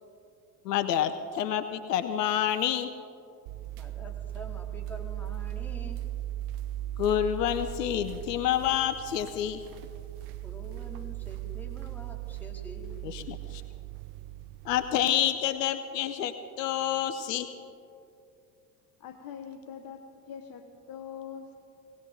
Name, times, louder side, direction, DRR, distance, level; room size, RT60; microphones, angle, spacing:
voice 1, 0.6-2.9 7.0-9.6 13.0-13.6 14.6-17.5, left 10 dB, 75° left, 10 dB, 0.8 m, -28 dB
sound 1, 3.5-15.0, right 13 dB, 60° right, 0.9 m, -38 dB
voice 2, 3.8-6.0 10.4-13.1, equal, 5° left, 0 dB, 2.6 m, -46 dB
voice 3, 19.0-21.6, left 7 dB, 45° left, 7 dB, 1.1 m, -43 dB
19.5 x 17.5 x 3.9 m, 2.5 s
figure-of-eight pair, 70°, 49 cm